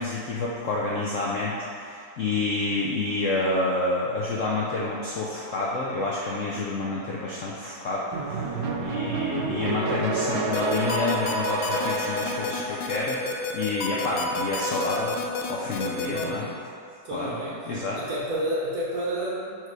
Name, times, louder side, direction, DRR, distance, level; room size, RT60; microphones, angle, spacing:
voice 1, 0.0-15.2 15.5-16.4 17.1-17.3 17.7-18.0, left 2 dB, 70° left, -4 dB, 0.7 m, -29 dB
sound 1, 8.1-13.6, right 3 dB, 85° right, 1.4 m, -29 dB
sound 2, 10.5-16.2, left 3 dB, 90° left, 1.3 m, -29 dB
voice 2, 16.0-16.6 17.0-19.6, right 1 dB, 60° right, -6 dB, 1.0 m, -31 dB
4.8 x 4.7 x 4.6 m, 2.4 s
omnidirectional pair, 2.0 m